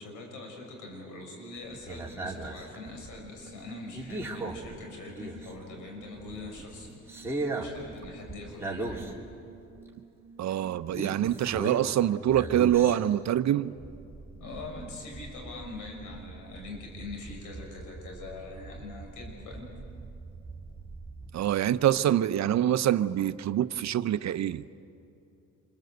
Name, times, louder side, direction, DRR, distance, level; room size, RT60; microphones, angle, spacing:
voice 1, 0.0-9.1 13.5-13.6 14.4-19.7, left 2 dB, 85° left, 1 dB, 6.5 m, -43 dB
sound 1, 1.6-5.8 6.2-9.4 9.7-9.8 10.9-12.0 12.3-13.3 13.8-21.3, right 2 dB, 10° right, 3.2 m, -39 dB
sound 2, 3.4-12.2, right 5 dB, 70° left, 6.6 m, -53 dB
voice 2, 10.4-13.7 21.3-24.6, right 11 dB, 65° right, 13 dB, 0.8 m, -25 dB
27.0 x 24.5 x 8.0 m, 2.7 s
cardioid pair, 90°, 30 cm